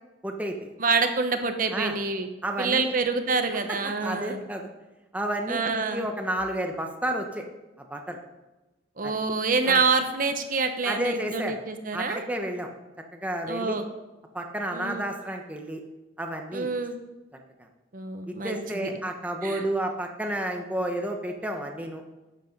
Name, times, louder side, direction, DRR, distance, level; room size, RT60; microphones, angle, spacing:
voice 1, 0.2-0.7 1.7-2.0 2.4-2.9 3.5-4.7 5.1-7.4 7.8-8.2 9.0-9.2 9.6-9.8 10.8-11.6 11.9-12.7 13.2-13.8 14.3-15.8 16.2-16.7 18.3-22.0, right 1 dB, 10° right, 3 dB, 0.9 m, -31 dB
voice 2, 0.8-2.3 2.6-4.4 5.5-6.1 9.0-12.2 13.5-13.8 14.7-15.0 16.5-17.0 17.9-18.9 19.4-19.6, right 4 dB, 45° right, 7 dB, 1.0 m, -27 dB
11.5 x 8.2 x 5.3 m, 1.1 s
head